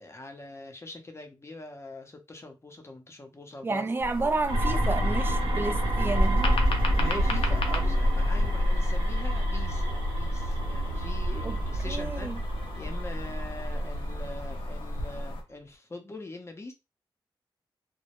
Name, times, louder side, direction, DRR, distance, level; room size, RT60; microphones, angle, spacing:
voice 1, 0.0-3.8 7.0-12.3 12.8-16.7, left 2 dB, 30° left, 0.7 m, -42 dB
voice 2, 3.6-6.6 11.4-11.6 11.8-12.4, right 3 dB, 25° right, 0.3 m, -31 dB
sound 1, 4.0-15.4, left 1 dB, 80° left, 0.5 m, -32 dB
sound 2, 4.5-15.2, equal, 80° right, 0.8 m, -29 dB
2.1 x 2.0 x 2.9 m
cardioid pair, 65°, 9 cm